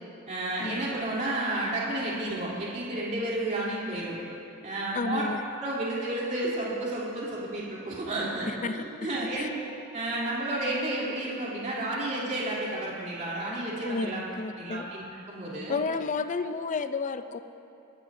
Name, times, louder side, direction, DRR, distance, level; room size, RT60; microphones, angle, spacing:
voice 1, 0.3-4.2 4.6-5.2 5.6-9.5 9.9-14.2 14.6-15.8, right 1 dB, 35° right, -7 dB, 3.2 m, -31 dB
voice 2, 4.9-5.4 8.5-9.1 9.4-9.5 13.8-14.9 15.7-17.4, left 4 dB, 35° left, 10 dB, 0.4 m, -31 dB
22.5 x 13.0 x 2.7 m, 2.7 s
head